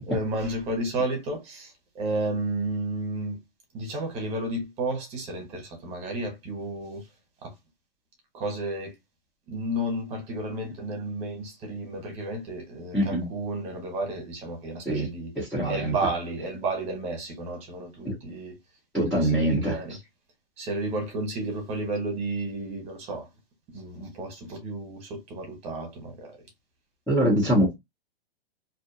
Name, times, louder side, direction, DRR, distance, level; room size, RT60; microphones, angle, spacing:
voice 1, 0.0-3.4 3.7-7.1 7.4-7.5 8.3-8.9 9.5-15.3 15.7-18.5 19.1-20.0 20.6-23.3 23.7-26.4, right 2 dB, 20° right, 0.9 m, -32 dB
voice 2, 12.9-13.3 14.9-15.1 15.4-15.9 18.0-18.1 18.9-19.8 27.1-27.8, right 1 dB, ahead, 0.4 m, -23 dB
2.6 x 2.1 x 2.5 m
hypercardioid pair, 165°, 30 cm